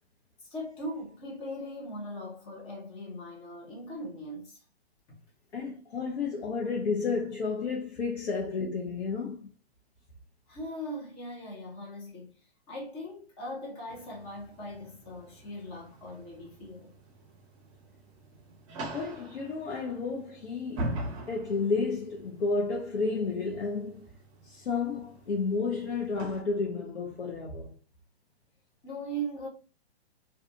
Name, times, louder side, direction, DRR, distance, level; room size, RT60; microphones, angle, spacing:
voice 1, 0.4-4.6 5.1-5.2 10.5-12.4 12.7-16.9 18.5-18.6 28.8-29.5, equal, 20° left, 0.7 m, -40 dB
voice 2, 5.5-9.5 18.9-20.9 21.3-24.1 24.4-27.8, left 4 dB, 85° left, 0.8 m, -31 dB
sound 1, 13.9-26.4, right 1 dB, 30° right, 0.7 m, -43 dB
2.5 x 2.5 x 2.4 m
hypercardioid pair, 140°, 32 cm